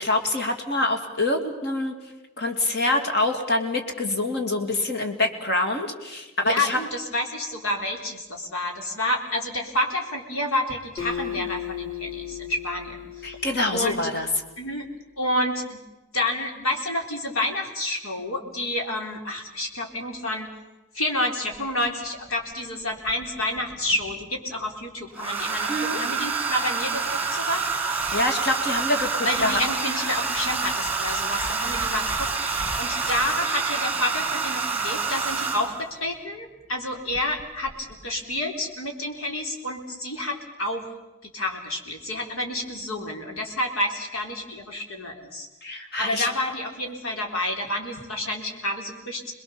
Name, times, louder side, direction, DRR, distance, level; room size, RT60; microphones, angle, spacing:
voice 1, 0.0-2.0 2.4-6.8 13.2-14.3 25.7-26.0 28.1-29.6 45.6-46.3, left 2 dB, 50° left, 5 dB, 2.7 m, -25 dB
voice 2, 6.4-13.4 13.7-14.0 14.6-14.9 15.2-15.8 16.1-20.5 20.9-27.9 29.2-40.9 41.3-49.3, left 1 dB, 85° left, 2 dB, 3.9 m, -29 dB
Acoustic guitar, 11.0-14.4, left 9 dB, 20° left, 2.9 m, -35 dB
Domestic sounds home sounds, 21.5-21.6 23.1-23.7 25.2-35.9 37.1-37.4 37.7-38.0, right 5 dB, 10° right, 1.9 m, -27 dB
27.5 x 21.0 x 7.1 m, 1.0 s
head